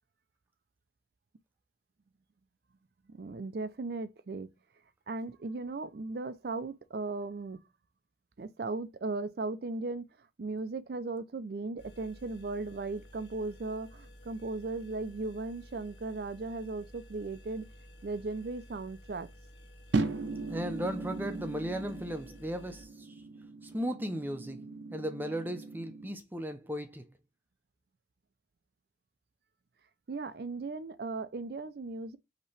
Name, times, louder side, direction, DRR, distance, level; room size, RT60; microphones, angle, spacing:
voice 1, 3.1-4.5 5.1-7.6 8.4-10.0 10.4-17.6 18.0-19.3 30.1-32.2, right 3 dB, 55° right, 0.4 m, -37 dB
sound 1, 11.8-22.9, equal, 85° left, 1.9 m, -53 dB
sound 2, 19.9-26.1, right 3 dB, 85° right, 0.7 m, -37 dB
voice 2, 20.5-23.1 23.6-24.6 24.9-27.1, equal, 10° right, 0.6 m, -36 dB
5.3 x 3.0 x 3.2 m
head